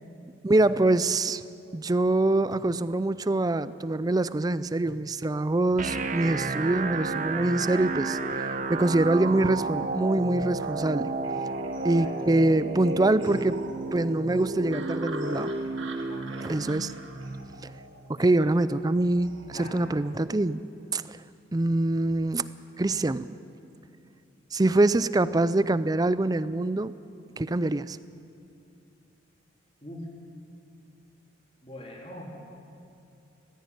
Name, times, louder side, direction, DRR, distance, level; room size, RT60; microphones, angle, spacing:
voice 1, 0.4-1.4 1.7-11.1 11.8-13.6 13.9-15.5 16.4-16.9 17.6-17.7 18.2-20.6 20.9-21.2 21.5-22.5 22.8-23.3 24.5-26.9 27.4-28.0, right 2 dB, 20° right, 16 dB, 0.4 m, -24 dB
sound 1, 5.8-19.8, right 3 dB, 40° right, 0.9 m, -32 dB
sound 2, 10.6-19.7, right 3 dB, 80° right, 1.8 m, -45 dB
voice 2, 11.8-12.1 16.1-16.5 18.2-18.4 19.5-19.8 29.8-30.1 31.6-32.3, left 1 dB, 30° left, -2 dB, 3.6 m, -43 dB
18.0 x 15.0 x 9.6 m, 2.6 s
head